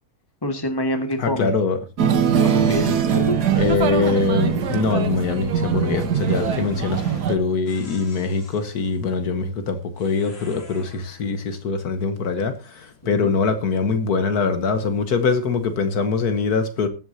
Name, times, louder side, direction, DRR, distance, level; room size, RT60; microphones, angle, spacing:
voice 1, 0.4-1.5 2.4-2.9 3.3-3.4 13.0-13.3, left 1 dB, 15° left, 1.6 m, -26 dB
voice 2, 1.2-1.8 3.6-7.0 7.3-16.9, left 4 dB, 65° left, 1.6 m, -23 dB
sound 1, 2.0-7.3, right 7 dB, 75° right, 1.7 m, -21 dB
sound 2, 5.7-7.3 7.6-9.1 10.0-11.4, left 2 dB, 35° left, 2.2 m, -44 dB
20.0 x 7.9 x 2.7 m
omnidirectional pair, 1.8 m